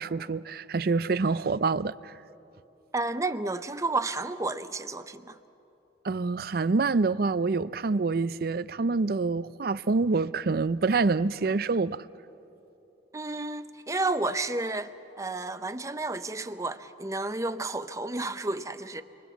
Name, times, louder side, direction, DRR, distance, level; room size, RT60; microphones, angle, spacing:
voice 1, 0.0-2.1 6.0-12.1, right 4 dB, 55° right, 0.5 m, -26 dB
voice 2, 2.9-5.4 13.1-19.0, right 2 dB, 20° right, 0.7 m, -31 dB
29.0 x 23.0 x 7.3 m
head